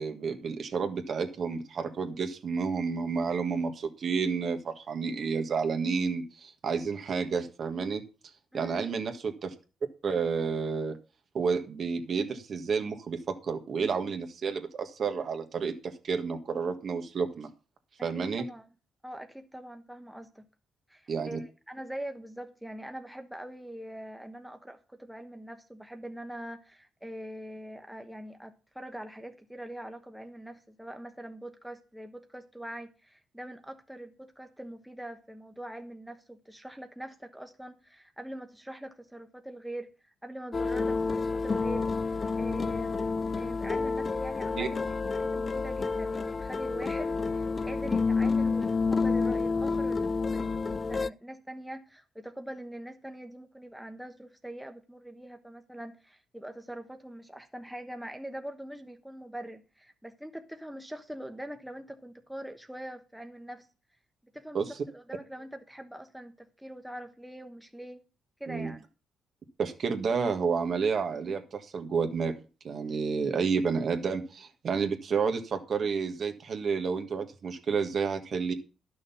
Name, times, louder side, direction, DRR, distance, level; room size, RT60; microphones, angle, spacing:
voice 1, 0.0-8.0 8.5-9.5 10.0-11.0 11.3-17.5 18.0-18.4 21.1-21.4 44.6-44.7 64.5-64.7 68.5-68.7 69.6-72.3 72.6-78.5, right 5 dB, 55° right, 1.6 m, -30 dB
voice 2, 18.0-18.7 19.0-20.4 20.9-39.9 40.2-63.7 64.3-68.0 68.4-68.8, right 1 dB, 5° right, 1.1 m, -43 dB
sound 1, 40.5-51.1, left 4 dB, 30° left, 0.4 m, -29 dB
11.0 x 6.4 x 5.7 m
cardioid pair, 90°, 0 cm